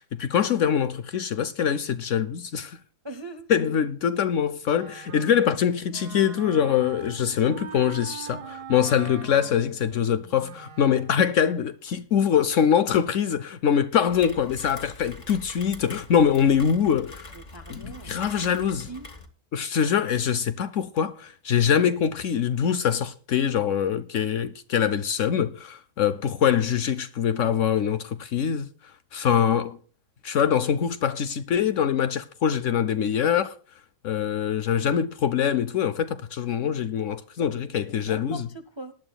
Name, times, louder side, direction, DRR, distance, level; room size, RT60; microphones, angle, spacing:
voice 1, 0.0-2.8 3.5-17.3 17.7-18.9 19.5-28.7 29.1-29.8 30.2-33.6 34.0-38.5, left 8 dB, 60° left, 0.9 m, -24 dB
voice 2, 3.0-3.5 17.3-18.5 18.9-19.1 37.9-38.9, right 1 dB, 30° right, 0.5 m, -41 dB
Wind instrument woodwind instrument, 4.7-11.3, right 8 dB, 85° right, 1.6 m, -42 dB
Rain, 14.1-19.3, left 2 dB, 30° left, 1.5 m, -44 dB
19.0 x 11.0 x 2.3 m
omnidirectional pair, 1.7 m